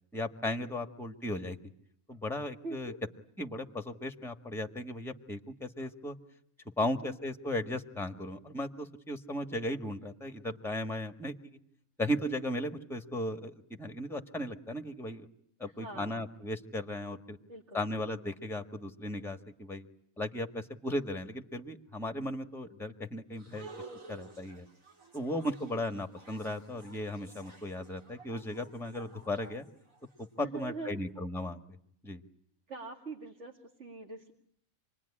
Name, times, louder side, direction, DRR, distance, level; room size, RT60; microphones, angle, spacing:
voice 1, 0.1-1.6 2.1-2.9 3.4-6.2 6.8-11.3 12.0-15.3 15.6-17.4 17.7-19.9 20.2-23.7 24.1-24.7 25.1-29.6 30.2-31.6 32.0-32.2, left 1 dB, ahead, 8 dB, 1.4 m, -36 dB
voice 2, 2.6-3.0 15.6-16.2 17.5-17.8 30.4-31.0 32.7-34.3, right 3 dB, 55° right, 0 dB, 2.6 m, -43 dB
sound 1, 23.4-30.3, right 3 dB, 75° right, 3.1 m, -53 dB
28.0 x 20.5 x 9.9 m, 0.70 s
omnidirectional pair, 1.4 m